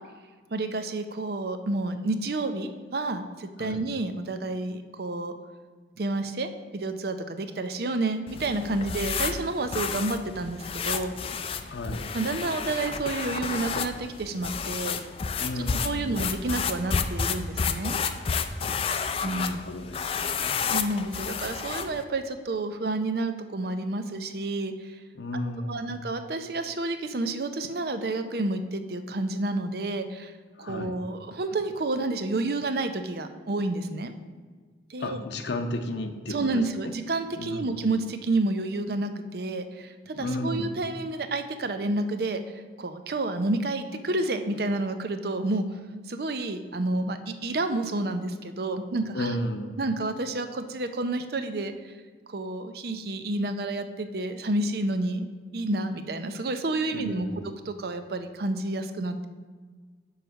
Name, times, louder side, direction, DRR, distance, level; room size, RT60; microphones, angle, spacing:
voice 1, 0.5-5.3 6.0-11.1 12.1-15.0 15.8-18.0 19.2-19.6 20.7-25.0 25.6-30.3 30.6-34.1 34.9-35.3 36.3-45.6 46.1-49.4 49.8-51.9 52.3-55.3 55.5-59.3, right 2 dB, 55° right, 8 dB, 0.6 m, -30 dB
sound 1, 8.3-22.0, left 6 dB, 30° left, 0.3 m, -31 dB
voice 2, 11.6-12.1 15.4-16.1 18.6-18.8 19.2-20.6 25.1-26.0 30.6-30.9 35.0-36.9 37.3-37.7 40.2-40.7 49.1-49.7 56.9-57.5, left 1 dB, 70° left, 6 dB, 0.6 m, -33 dB
9.3 x 3.2 x 6.2 m, 1.5 s
head